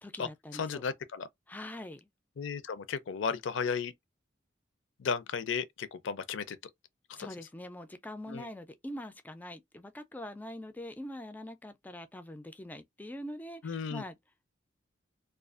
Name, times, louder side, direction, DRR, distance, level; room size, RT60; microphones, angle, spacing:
voice 1, 0.0-0.8 1.5-2.0 7.1-14.2, left 1 dB, 10° left, 0.3 m, -43 dB
voice 2, 0.6-1.3 2.4-3.9 5.0-6.6 7.2-7.3 8.3-8.5 13.6-14.0, left 6 dB, 75° left, 0.4 m, -34 dB
2.4 x 2.3 x 2.4 m
head